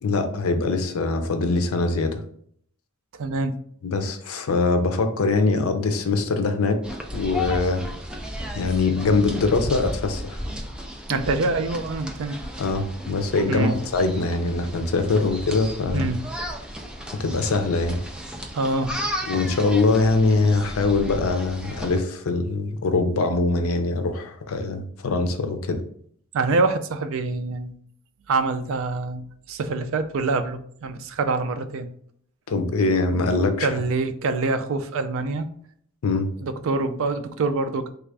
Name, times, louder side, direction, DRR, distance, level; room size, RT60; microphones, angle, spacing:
voice 1, 0.0-2.2 3.8-6.8 7.1-7.9 8.5-10.4 12.6-16.1 17.1-18.0 19.3-25.8 32.5-33.7 36.0-36.3, left 3 dB, 85° left, 7 dB, 0.5 m, -23 dB
voice 2, 3.1-3.6 11.1-12.4 13.5-13.8 15.9-16.2 18.5-19.0 26.3-27.7 28.3-31.9 33.6-35.5 36.4-37.9, right 3 dB, 70° right, 9 dB, 0.4 m, -25 dB
sound 1, 6.8-22.0, equal, 5° right, 0.4 m, -34 dB
3.4 x 2.4 x 3.3 m, 0.62 s
head